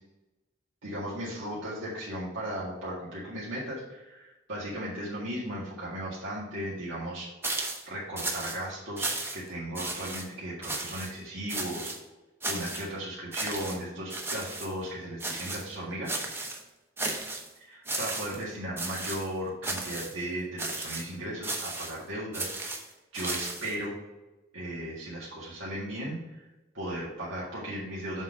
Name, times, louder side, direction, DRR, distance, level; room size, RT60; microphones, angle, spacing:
voice 1, 0.8-11.9 12.5-16.1 17.6-22.7 23.1-24.0 24.5-26.4 26.7-28.2, right 1 dB, 85° right, -8 dB, 1.9 m, -36 dB
sound 1, 7.4-7.9 8.2-8.6 9.0-9.5 9.7-10.2 10.6-11.1 11.5-12.0 12.4-12.9 13.3-13.8 14.1-14.7 15.2-15.7 16.1-16.6 17.0-17.5 17.8-18.4 18.8-19.3 19.6-20.1 20.6-21.1 21.4-22.0 22.3-23.7, right 2 dB, 10° right, 0.8 m, -34 dB
7.1 x 4.0 x 5.3 m, 1.1 s
head